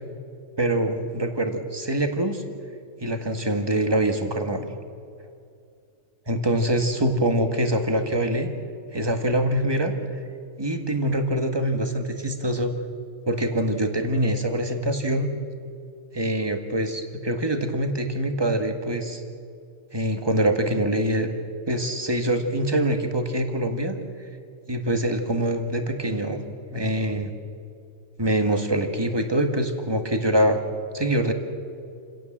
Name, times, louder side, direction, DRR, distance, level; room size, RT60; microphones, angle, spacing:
voice 1, 0.6-2.4 3.0-4.7 6.3-8.5 8.9-9.9 10.6-12.7 13.3-15.3 16.1-19.2 19.9-21.3 21.7-24.0 24.7-27.3 28.2-30.6 30.9-31.3, right 1 dB, 20° right, 5 dB, 1.8 m, -24 dB
28.5 x 17.0 x 7.5 m, 2.4 s
omnidirectional pair, 1.4 m